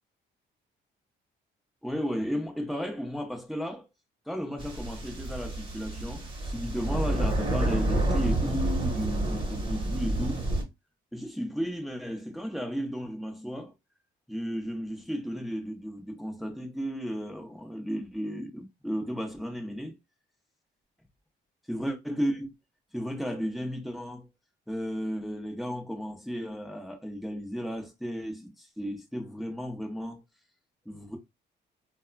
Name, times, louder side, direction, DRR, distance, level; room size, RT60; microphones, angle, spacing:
voice 1, 1.8-3.9 4.3-10.4 11.1-13.7 14.3-20.0 21.7-22.5 22.9-24.3 24.7-30.2 30.9-31.2, equal, ahead, 0.7 m, -34 dB
sound 1, 4.6-10.6, right 1 dB, 25° right, 1.1 m, -29 dB
2.8 x 2.2 x 2.3 m
cardioid pair, 90°, 20 cm